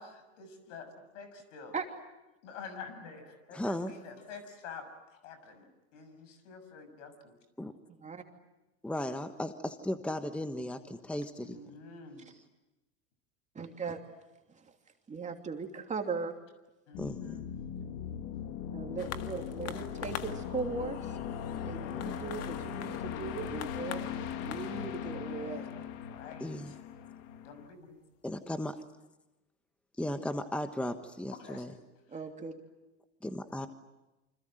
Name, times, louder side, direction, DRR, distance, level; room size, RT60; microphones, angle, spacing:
voice 1, 0.0-1.8 2.4-7.3 11.4-12.3 16.9-17.5 25.3-26.8 27.4-28.0 31.3-31.9, left 5 dB, 80° left, 9 dB, 6.6 m, -48 dB
voice 2, 3.5-3.9 7.6-7.7 8.8-11.6 17.0-17.4 26.4-26.7 28.2-28.8 30.0-31.7 33.2-33.7, left 1 dB, 5° left, 9 dB, 1.2 m, -36 dB
voice 3, 7.9-8.2 12.2-12.4 13.5-14.0 14.5-16.4 18.7-21.2 21.7-25.7 32.1-32.5, right 4 dB, 20° right, 4 dB, 2.9 m, -39 dB
sound 1, 16.9-27.7, left 8 dB, 60° left, 2.3 m, -39 dB
sound 2, 19.0-27.8 28.6-28.7, left 10 dB, 40° left, 1.9 m, -47 dB
28.5 x 26.0 x 7.9 m, 1.0 s
supercardioid pair, 120°, 37 cm